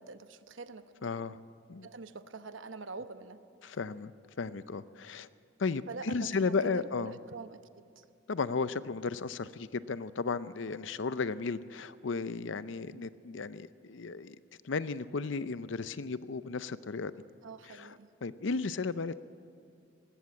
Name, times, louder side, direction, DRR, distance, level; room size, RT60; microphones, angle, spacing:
voice 1, 0.0-1.4 1.8-3.4 5.9-8.0 12.7-13.0 17.4-18.1, right 3 dB, 80° right, 10 dB, 0.9 m, -45 dB
voice 2, 1.0-1.4 1.7-1.9 3.6-4.1 4.4-5.3 5.6-7.2 8.3-14.4 14.6-17.1 17.7-17.9 18.2-19.2, left 4 dB, 75° left, 15 dB, 0.6 m, -34 dB
19.5 x 15.5 x 9.6 m, 2.4 s
head